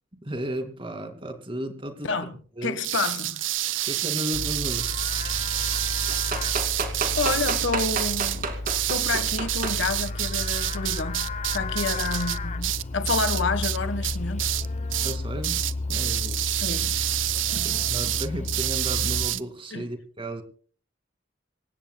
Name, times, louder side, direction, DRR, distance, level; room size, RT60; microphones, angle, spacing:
voice 1, 0.2-2.1 2.6-2.8 3.8-5.0 15.0-15.6 15.9-16.7 17.6-20.4, equal, 25° right, 2.5 m, -34 dB
voice 2, 2.0-2.3 2.6-3.4 7.1-8.5 8.9-14.5 16.6-17.0 17.5-17.8 19.7-19.9, left 4 dB, 75° left, 1.5 m, -29 dB
sound 1, 2.8-13.8 14.0-14.6 14.9-15.2 15.4-19.4, right 15 dB, 85° right, 0.6 m, -28 dB
Livestock farm animals working animals, 4.3-19.2, left 2 dB, 35° left, 0.9 m, -32 dB
sound 2, 6.1-9.8 10.7-10.8, right 4 dB, 45° right, 2.6 m, -30 dB
26.5 x 16.5 x 2.3 m
head